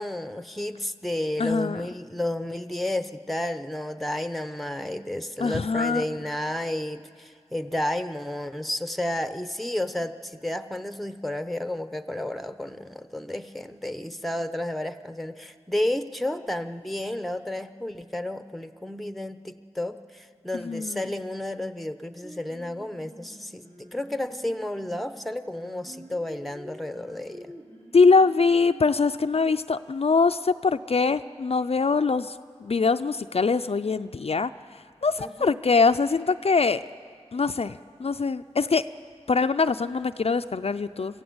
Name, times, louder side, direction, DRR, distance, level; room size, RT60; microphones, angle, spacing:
voice 1, 0.0-27.5 35.2-35.5, left 1 dB, ahead, 10 dB, 0.8 m, -32 dB
voice 2, 1.4-1.8 5.4-6.0 20.6-21.0 27.9-32.3 32.6-34.5 35.0-36.8 37.3-38.8 39.3-41.2, left 4 dB, 60° left, 10 dB, 0.4 m, -23 dB
Singing, 22.2-29.5, equal, 60° right, 6.0 m, -48 dB
26.0 x 15.0 x 8.0 m, 2.2 s
wide cardioid pair, 50°, 12 cm